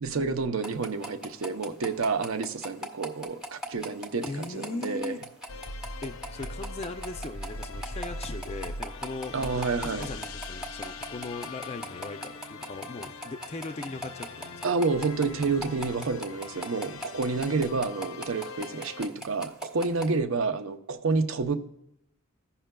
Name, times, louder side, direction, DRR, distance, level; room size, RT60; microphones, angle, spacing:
voice 1, 0.0-5.2 9.3-10.1 14.6-21.6, right 4 dB, 75° right, 7 dB, 0.6 m, -29 dB
sound 1, 0.6-20.1, equal, 5° right, 0.8 m, -38 dB
voice 2, 4.2-5.2 6.0-14.7, left 3 dB, 30° left, 8 dB, 0.4 m, -39 dB
sound 2, 5.5-19.1, left 2 dB, 80° left, 0.5 m, -41 dB
15.0 x 5.6 x 2.2 m, 0.80 s
head